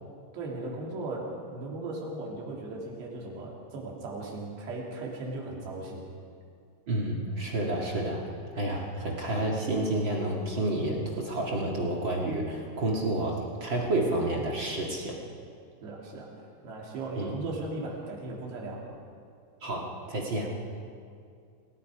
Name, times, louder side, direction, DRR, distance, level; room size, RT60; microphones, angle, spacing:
voice 1, 0.3-6.1 15.8-16.3 16.6-18.9, right 2 dB, 80° right, -3 dB, 5.0 m, -37 dB
voice 2, 6.9-15.2 17.2-17.3 19.6-20.5, right 1 dB, 40° right, -2 dB, 2.1 m, -30 dB
28.5 x 18.5 x 5.0 m, 2.3 s
omnidirectional pair, 4.8 m